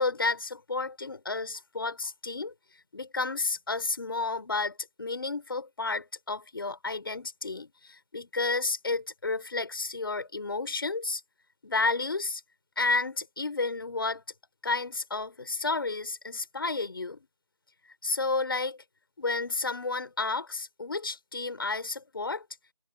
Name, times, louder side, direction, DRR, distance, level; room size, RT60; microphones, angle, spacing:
voice 1, 0.0-2.5 2.9-11.2 11.6-12.4 12.8-14.2 14.6-17.3 18.0-18.8 19.2-22.4, left 3 dB, 35° left, 6.6 m, -31 dB
figure-of-eight pair, 175°, 20 cm